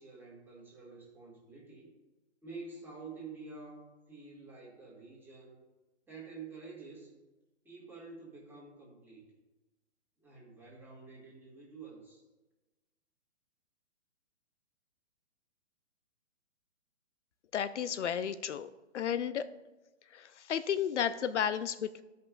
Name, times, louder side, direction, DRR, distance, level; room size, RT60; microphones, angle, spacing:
voice 1, 0.0-1.9 2.4-5.6 6.1-7.1 7.6-9.3 10.2-12.2, right 4 dB, 5° right, -5 dB, 2.0 m, -49 dB
voice 2, 17.5-19.5 20.1-22.0, left 8 dB, 75° left, 14 dB, 0.6 m, -33 dB
15.0 x 5.5 x 2.5 m, 1.1 s
hypercardioid pair, 140°, 35 cm